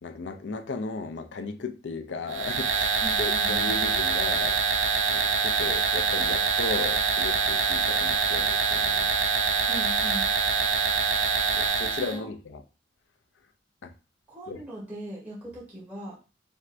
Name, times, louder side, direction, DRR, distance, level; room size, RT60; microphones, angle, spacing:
voice 1, 0.0-4.6 5.1-9.1 11.5-12.6 13.8-13.9 14.5-14.6, left 3 dB, 75° left, 0.5 m, -35 dB
sound 1, 2.3-12.2, right 5 dB, 85° right, 0.7 m, -25 dB
voice 2, 3.0-3.6 9.7-10.3 12.0-12.3 14.3-16.1, right 1 dB, 10° right, 2.0 m, -39 dB
4.5 x 3.3 x 2.5 m
head